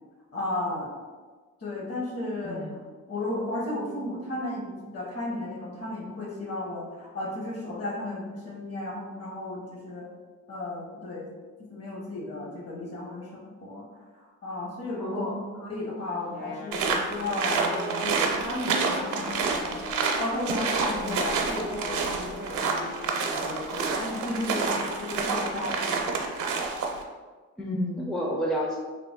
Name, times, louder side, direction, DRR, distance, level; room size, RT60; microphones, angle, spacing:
voice 1, 0.3-0.9 1.6-2.8 3.1-10.1 10.5-11.3 11.6-13.9 14.4-22.9 23.4-26.3, left 2 dB, 50° left, -3 dB, 1.2 m, -34 dB
voice 2, 2.4-2.8 15.0-15.5 21.0-21.2 27.6-28.8, equal, ahead, -1 dB, 0.4 m, -31 dB
Wind instrument woodwind instrument, 16.2-24.2, left 2 dB, 80° left, 0.8 m, -40 dB
sound 1, 16.7-27.0, right 4 dB, 80° right, 0.6 m, -28 dB
3.4 x 2.1 x 3.6 m, 1.4 s
cardioid pair, 90°, 30 cm